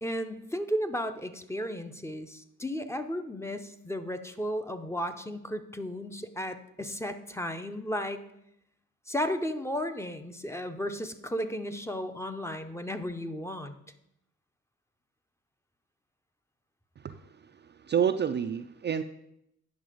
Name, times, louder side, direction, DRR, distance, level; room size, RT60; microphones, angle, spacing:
voice 1, 0.0-8.2 9.1-13.7, equal, 10° left, 8 dB, 0.7 m, -34 dB
voice 2, 17.0-19.0, right 8 dB, 35° right, 8 dB, 0.4 m, -30 dB
9.5 x 5.9 x 5.0 m, 0.79 s
cardioid pair, 90°, 30 cm